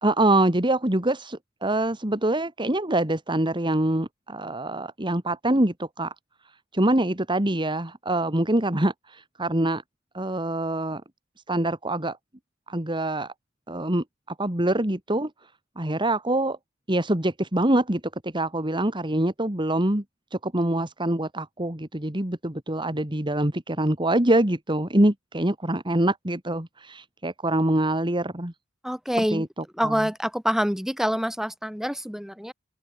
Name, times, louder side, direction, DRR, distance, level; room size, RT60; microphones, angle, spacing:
voice 1, 0.0-6.1 6.7-9.8 10.1-11.0 11.5-12.2 12.7-13.3 13.7-14.0 14.4-15.3 15.8-16.6 16.9-20.0 20.3-28.5 29.3-29.5 29.8-30.1, right 1 dB, 25° right, 2.3 m, -25 dB
voice 2, 28.8-29.5 29.7-32.5, equal, ahead, 5.5 m, -26 dB
open air
head